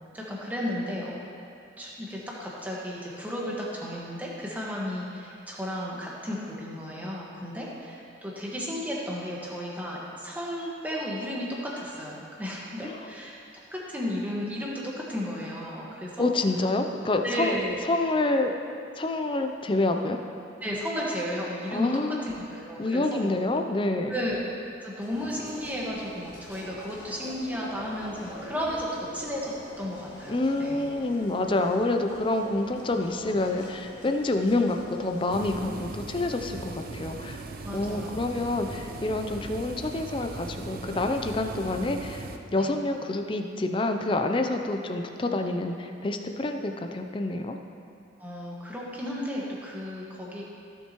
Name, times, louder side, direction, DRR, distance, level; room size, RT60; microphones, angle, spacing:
voice 1, 0.1-1.2 1.8-13.4 13.7-16.3 17.2-17.8 20.6-23.4 24.1-24.5 24.8-30.8 37.6-38.4 42.6-42.7 48.2-50.4, equal, 10° right, -5 dB, 1.5 m, -34 dB
voice 2, 16.2-17.6 17.9-18.5 19.0-20.2 21.7-22.2 22.8-24.1 30.3-37.4 37.7-42.3 42.5-47.6, left 2 dB, 25° left, 5 dB, 0.5 m, -27 dB
sound 1, 25.0-35.5, equal, 55° left, 1.9 m, -44 dB
sound 2, 35.3-42.4, right 3 dB, 50° right, 0.6 m, -39 dB
15.5 x 7.3 x 3.0 m, 2.5 s
head